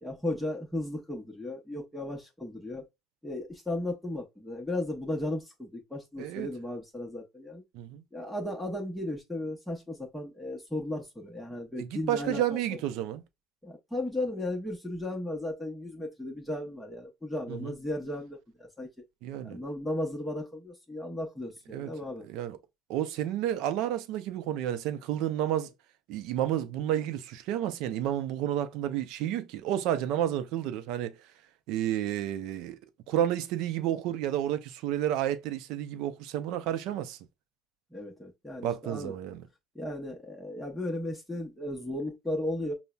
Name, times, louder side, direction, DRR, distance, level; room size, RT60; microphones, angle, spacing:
voice 1, 0.0-2.9 3.2-7.6 8.1-12.4 12.7-12.8 13.6-18.9 19.4-22.3 37.9-39.1 39.7-42.7, left 1 dB, ahead, 0.8 m, -35 dB
voice 2, 11.8-13.2 17.5-17.7 19.2-19.6 21.7-21.9 22.2-22.6 22.9-25.7 26.1-31.1 31.7-32.8 33.1-37.2 38.6-39.5, right 11 dB, 70° right, 0.5 m, -31 dB
5.4 x 2.0 x 2.2 m
cardioid pair, 135°, 0 cm